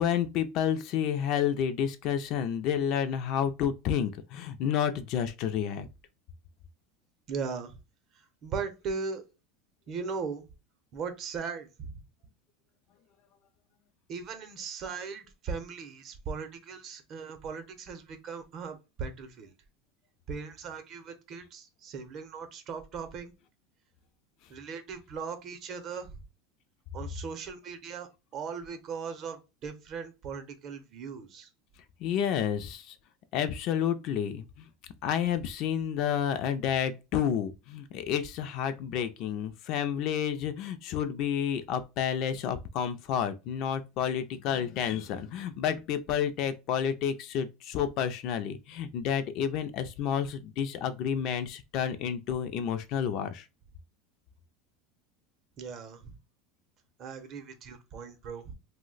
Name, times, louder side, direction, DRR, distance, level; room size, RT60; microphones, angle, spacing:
voice 1, 0.0-5.9 32.0-33.0 33.3-34.7 35.0-53.5, left 8 dB, 45° left, 0.4 m, -30 dB
voice 2, 7.3-7.8 8.4-9.2 9.9-10.5 10.9-12.0 14.1-19.5 20.3-23.3 24.5-26.1 26.9-31.5 55.6-56.2 57.0-58.5, right 5 dB, 35° right, 0.6 m, -38 dB
2.7 x 2.1 x 3.8 m
supercardioid pair, 150°, 0 cm